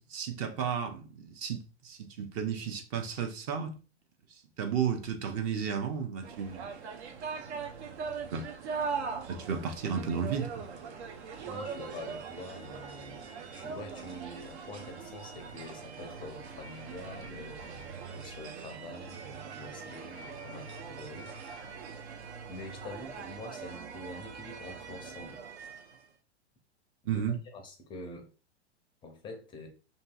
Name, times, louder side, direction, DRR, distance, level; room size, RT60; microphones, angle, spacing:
voice 1, 0.0-3.8 4.6-6.7 8.3-8.5 9.3-10.5 27.1-27.4, right 7 dB, 35° right, 0.5 m, -33 dB
sound 1, 6.2-26.1, right 5 dB, 75° right, 0.7 m, -41 dB
voice 2, 11.5-13.2 13.5-21.3 22.2-25.4 27.0-28.3 29.0-29.7, left 2 dB, 15° left, 0.4 m, -46 dB
2.7 x 2.7 x 2.3 m
hypercardioid pair, 120°, 34 cm